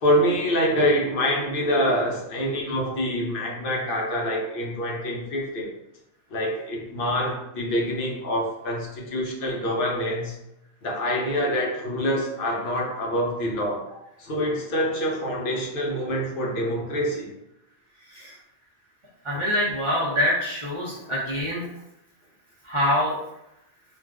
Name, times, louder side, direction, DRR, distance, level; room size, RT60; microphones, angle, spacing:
voice 1, 0.0-5.7 6.3-10.4 10.8-13.8 14.2-17.3 20.1-20.2 20.9-21.1, equal, 55° left, -1 dB, 0.8 m, -26 dB
voice 2, 19.2-21.7 22.6-23.2, equal, 35° right, -6 dB, 0.6 m, -25 dB
2.4 x 2.4 x 3.4 m, 0.86 s
omnidirectional pair, 1.2 m